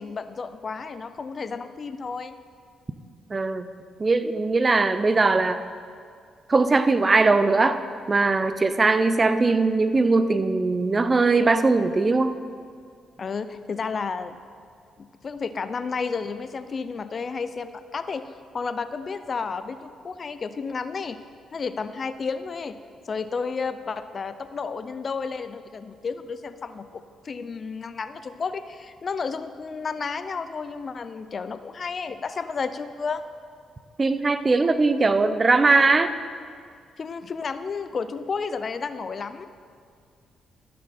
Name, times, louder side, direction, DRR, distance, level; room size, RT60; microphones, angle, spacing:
voice 1, 0.0-2.4 13.2-14.4 15.0-18.2 18.5-21.2 21.5-22.8 23.1-26.9 27.2-33.2 37.0-39.5, left 5 dB, 45° left, 11 dB, 0.5 m, -32 dB
voice 2, 3.3-3.7 4.0-5.6 6.5-7.8 8.1-12.4 34.0-36.1, right 3 dB, 30° right, 11 dB, 0.6 m, -20 dB
14.5 x 6.4 x 4.2 m, 2.2 s
supercardioid pair, 65°, 0 cm